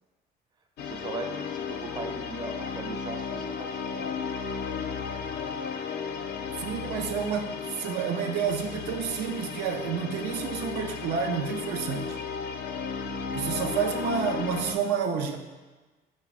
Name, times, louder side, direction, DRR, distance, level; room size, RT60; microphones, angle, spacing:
sound 1, 0.8-14.7, left 6 dB, 65° left, 0.4 m, -34 dB
voice 1, 0.8-4.2, right 2 dB, 25° right, 4 dB, 0.5 m, -39 dB
voice 2, 6.6-7.5 7.8-12.2 13.3-15.4, right 7 dB, 80° right, 4 dB, 0.4 m, -29 dB
4.9 x 2.1 x 4.7 m, 1.2 s
cardioid pair, 110°, 17 cm